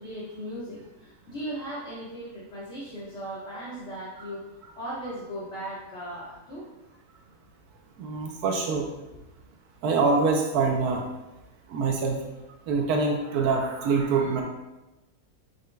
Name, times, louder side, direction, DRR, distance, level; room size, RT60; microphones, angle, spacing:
voice 1, 0.0-4.5 4.7-6.7, right 1 dB, 50° left, -8 dB, 1.6 m, -37 dB
voice 2, 8.0-8.9 9.8-11.0 11.7-12.2 12.7-14.4, right 4 dB, 80° right, 2 dB, 1.2 m, -24 dB
9.0 x 5.2 x 2.2 m, 1.0 s
omnidirectional pair, 1.6 m